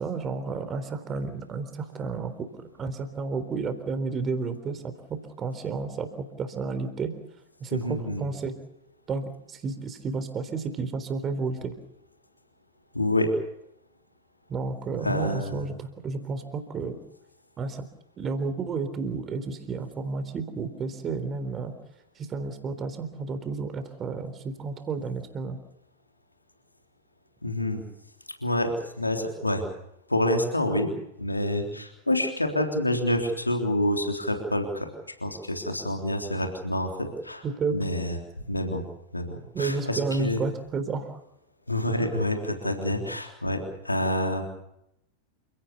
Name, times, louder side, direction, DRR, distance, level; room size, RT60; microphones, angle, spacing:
voice 1, 0.0-7.1 7.6-8.5 9.1-11.7 14.5-17.0 17.6-17.8 18.2-21.7 22.2-25.6 37.4-38.1 39.5-41.2, right 4 dB, 25° right, 9 dB, 3.9 m, -31 dB
voice 2, 7.7-8.2 12.9-13.3 15.0-15.6 27.4-27.8 28.4-29.6 30.1-30.9 31.2-34.9 35.2-37.4 37.7-38.2 38.5-38.8 39.1-40.4 41.7-44.4, left 1 dB, 85° left, 4 dB, 3.6 m, -27 dB
29.0 x 17.0 x 7.0 m, 0.81 s
figure-of-eight pair, 90°, 0 cm